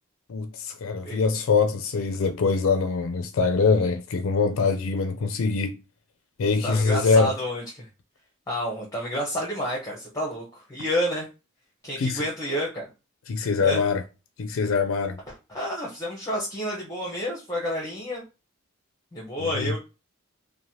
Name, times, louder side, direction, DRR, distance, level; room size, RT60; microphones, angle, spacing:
voice 1, 0.3-5.8 6.4-7.3 12.0-12.3 13.3-14.0 14.4-15.2 19.4-19.7, left 4 dB, 85° left, 0.4 m, -23 dB
voice 2, 6.6-7.9 8.5-11.3 11.8-12.9 13.6-13.8 15.5-18.2 19.1-19.8, equal, 15° left, 0.7 m, -29 dB
3.0 x 2.1 x 2.7 m
head